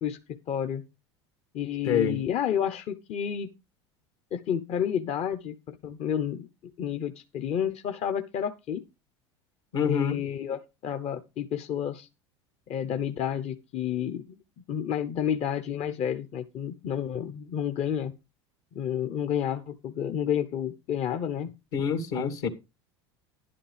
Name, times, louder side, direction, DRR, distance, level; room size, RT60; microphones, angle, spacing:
voice 1, 0.0-0.8 1.5-3.5 4.3-6.5 6.8-8.8 9.8-12.1 12.7-14.4 14.7-18.1 18.7-21.5 22.1-22.3, left 9 dB, 45° left, 0.9 m, -30 dB
voice 2, 1.9-2.2 9.7-10.2 21.7-22.5, left 7 dB, 75° left, 2.2 m, -26 dB
11.0 x 11.0 x 3.4 m
hypercardioid pair, 80°, 14 cm